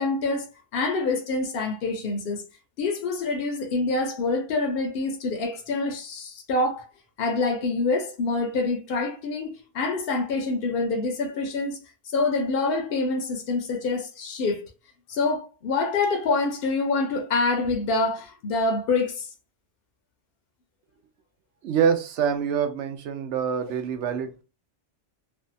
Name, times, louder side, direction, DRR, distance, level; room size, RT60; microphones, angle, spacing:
voice 1, 0.0-2.4 2.8-6.9 7.2-11.8 12.1-14.7 15.1-19.3, left 3 dB, 60° left, 0.7 m, -26 dB
voice 2, 21.6-24.4, right 7 dB, 80° right, 0.9 m, -25 dB
2.6 x 2.2 x 2.5 m
omnidirectional pair, 1.2 m